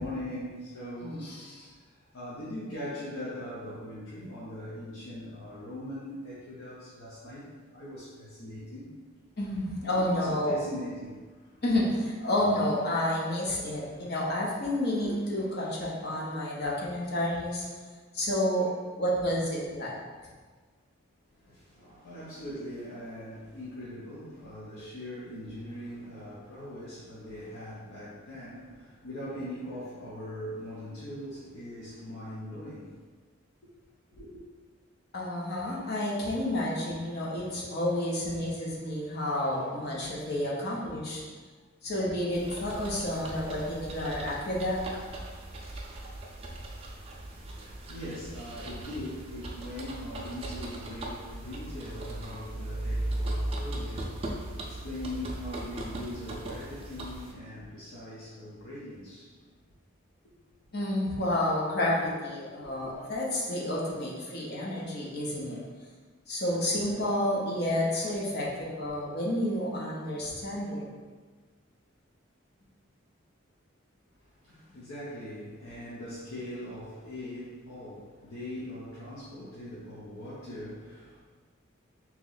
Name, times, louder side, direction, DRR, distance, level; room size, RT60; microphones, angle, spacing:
voice 1, 0.0-1.4 2.1-8.9 10.0-11.2 11.8-11.9 12.5-12.6 15.2-15.3 21.4-32.9 34.1-34.3 47.1-59.3 62.7-62.8 74.4-81.2, left 1 dB, 85° left, -9 dB, 0.8 m, -41 dB
voice 2, 1.0-1.7 9.4-10.5 11.6-17.6 18.1-18.7 19.0-19.9 35.1-41.2 41.8-44.8 60.7-65.6 66.3-70.8, left 1 dB, 50° left, -4 dB, 0.7 m, -30 dB
sound 1, 42.3-57.3, right 1 dB, 30° right, 0.4 m, -38 dB
3.0 x 2.9 x 3.9 m, 1.4 s
head